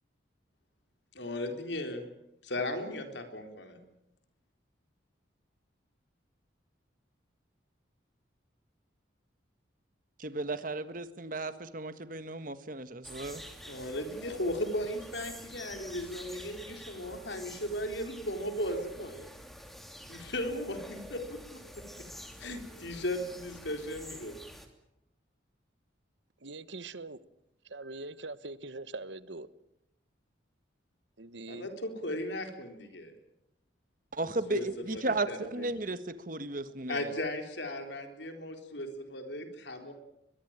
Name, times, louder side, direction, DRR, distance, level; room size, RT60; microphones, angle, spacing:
voice 1, 1.1-2.0 2.4-3.8 13.6-19.3 20.1-22.0 22.4-24.3 31.5-33.1 34.5-35.6 36.9-39.9, left 1 dB, 65° left, 4.1 m, -36 dB
voice 2, 10.2-13.4 34.1-37.1, right 2 dB, 45° right, 1.6 m, -35 dB
sound 1, 13.0-24.7, equal, ahead, 2.7 m, -48 dB
voice 3, 26.4-27.2 27.6-29.5 31.2-31.7, right 2 dB, 70° right, 1.2 m, -42 dB
22.5 x 22.0 x 8.9 m
head